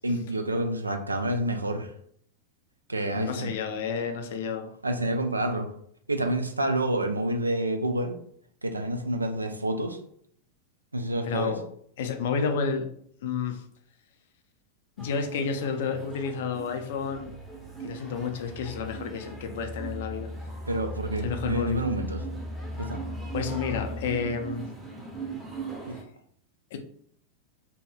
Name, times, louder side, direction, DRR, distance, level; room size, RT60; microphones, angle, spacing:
voice 1, 0.0-1.9 2.9-3.5 4.8-5.7 6.1-8.2 8.6-10.0 10.9-11.6 20.7-22.2 22.8-23.0 25.9-26.0, right 1 dB, 80° right, 6 dB, 0.3 m, -28 dB
voice 2, 3.1-4.7 11.2-11.6 12.0-12.9 13.2-13.6 15.0-17.3 17.8-20.3 21.2-21.8 23.3-24.7 26.7-26.8, left 6 dB, 55° left, 6 dB, 0.4 m, -30 dB
sound 1, 15.0-26.0, right 5 dB, 5° right, 0.7 m, -41 dB
sound 2, 17.1-24.6, left 1 dB, 50° right, 0.9 m, -39 dB
2.7 x 2.7 x 2.2 m, 0.65 s
figure-of-eight pair, 90°, 0 cm